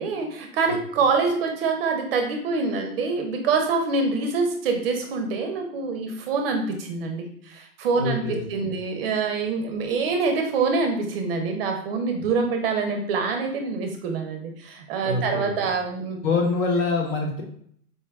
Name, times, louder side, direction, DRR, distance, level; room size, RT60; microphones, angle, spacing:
voice 1, 0.0-16.2, right 4 dB, 40° right, 4 dB, 0.5 m, -25 dB
voice 2, 8.0-8.7 15.0-15.5 16.2-17.4, left 3 dB, 55° left, 1 dB, 1.2 m, -25 dB
4.4 x 2.2 x 3.4 m, 0.63 s
hypercardioid pair, 140°, 47 cm